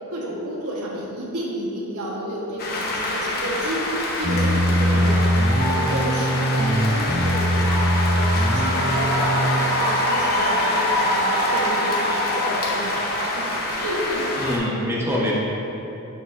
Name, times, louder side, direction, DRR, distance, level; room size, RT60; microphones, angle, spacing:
voice 1, 0.1-13.5 13.8-14.9, equal, 80° right, -4 dB, 1.2 m, -31 dB
sound 1, 2.6-14.6, left 1 dB, 45° left, 0.9 m, -24 dB
sound 2, 4.2-9.4, equal, 30° right, 0.6 m, -21 dB
Mallet percussion, 5.6-8.1, left 1 dB, 15° left, 0.4 m, -36 dB
voice 2, 14.4-15.3, left 1 dB, 10° right, -6 dB, 1.0 m, -25 dB
6.9 x 6.5 x 2.5 m, 3.0 s
head